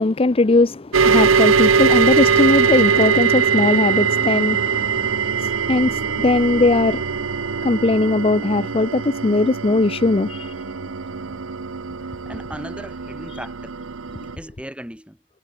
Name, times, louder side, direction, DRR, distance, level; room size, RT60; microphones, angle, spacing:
voice 1, 0.0-7.2 7.6-10.5, left 2 dB, 30° left, 0.6 m, -19 dB
sound 1, 0.9-14.4, right 6 dB, 85° right, 0.8 m, -21 dB
voice 2, 11.1-11.4 12.2-13.8 14.4-15.2, equal, 5° right, 6.4 m, -37 dB
head